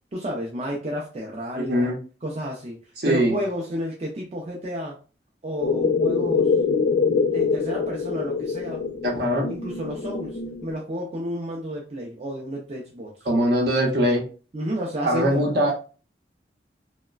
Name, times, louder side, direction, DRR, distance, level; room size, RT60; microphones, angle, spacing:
voice 1, 0.1-1.9 2.2-2.8 3.0-5.0 5.4-6.5 7.3-8.8 9.5-13.3 14.5-15.7, equal, 35° right, -2 dB, 0.4 m, -31 dB
voice 2, 1.6-2.0 3.0-3.4 9.0-9.5 13.2-14.2 15.0-15.7, equal, 60° right, 0 dB, 0.7 m, -21 dB
sound 1, 5.6-10.7, left 5 dB, 65° left, 0.5 m, -24 dB
3.0 x 2.1 x 2.3 m, 0.36 s
head